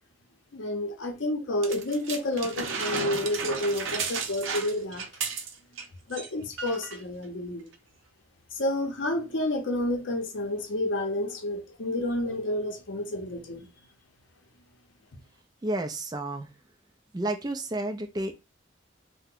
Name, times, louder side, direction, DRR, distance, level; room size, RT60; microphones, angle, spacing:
voice 1, 0.5-5.1 6.1-7.7 8.5-13.7, left 1 dB, 70° left, 0.7 m, -30 dB
sound 1, 1.6-5.8 6.1-6.3 6.6-7.0 7.7-7.8, right 5 dB, 80° right, 0.6 m, -33 dB
voice 2, 15.6-16.5 17.1-18.3, right 1 dB, 20° right, 0.3 m, -31 dB
2.8 x 2.1 x 3.6 m
head